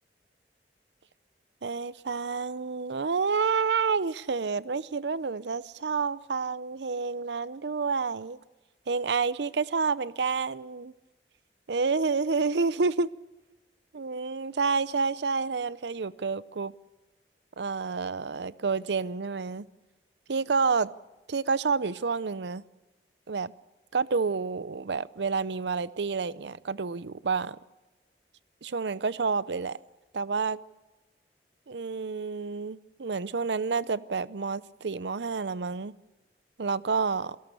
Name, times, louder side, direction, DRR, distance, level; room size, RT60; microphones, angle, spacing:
voice 1, 1.6-8.4 8.9-10.9 11.7-13.1 13.9-16.7 17.6-19.7 20.3-20.9 21.3-22.6 23.3-23.5 23.9-27.6 28.6-29.8 30.1-30.6 31.7-35.9 36.6-37.4, right 4 dB, 75° right, 0.6 m, -29 dB
28.0 x 18.0 x 6.8 m
head